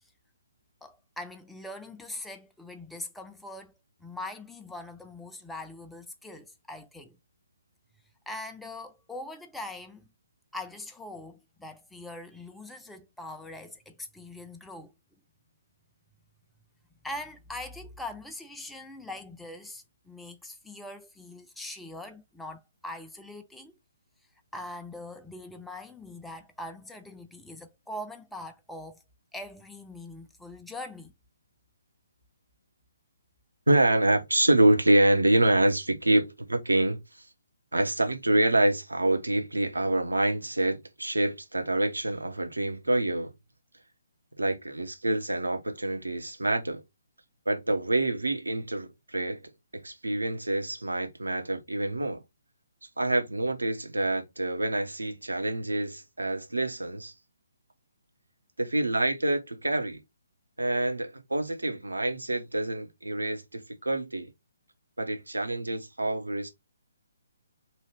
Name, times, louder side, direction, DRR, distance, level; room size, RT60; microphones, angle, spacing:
voice 1, 0.8-3.7 4.0-7.2 8.3-10.1 10.5-14.9 17.0-23.7 24.5-29.0 29.3-31.1, left 2 dB, 5° left, 0.4 m, -42 dB
voice 2, 33.7-37.0 37.7-43.3 44.4-46.8 47.5-49.4 49.7-52.2 53.0-57.1 58.6-60.0 60.6-64.3 65.0-66.5, right 1 dB, 80° right, 0.9 m, -26 dB
2.8 x 2.4 x 3.2 m
figure-of-eight pair, 140°, 0 cm